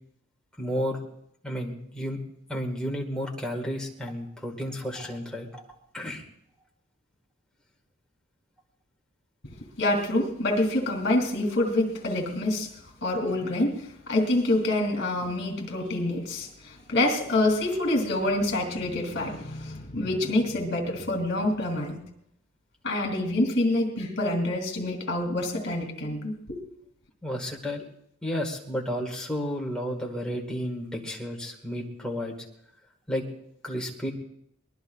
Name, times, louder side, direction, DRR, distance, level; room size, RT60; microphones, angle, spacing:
voice 1, 0.6-1.0 1.4-2.2 2.5-6.2 27.2-27.8 28.2-32.3 33.1-33.2 33.6-34.1, equal, 5° left, -1 dB, 1.9 m, -32 dB
voice 2, 9.8-12.7 13.0-13.8 14.1-22.0 22.8-26.6, left 1 dB, 55° left, 2 dB, 3.0 m, -26 dB
23.0 x 20.5 x 2.5 m, 0.72 s
head